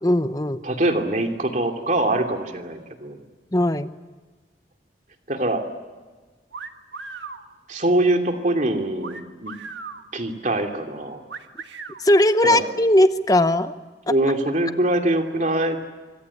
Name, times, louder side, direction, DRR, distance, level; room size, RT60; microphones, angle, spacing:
voice 1, 0.0-0.6 3.5-3.9 12.0-13.7, left 1 dB, 20° left, 11 dB, 0.9 m, -18 dB
voice 2, 0.6-3.2 5.3-5.6 7.7-9.6 10.1-11.2 12.4-12.6 14.1-15.8, right 1 dB, 45° right, 4 dB, 2.7 m, -23 dB
sound 1, 6.5-7.4 9.0-10.0 11.3-12.0, right 4 dB, 85° right, 1.6 m, -36 dB
25.5 x 25.0 x 8.5 m, 1.3 s
head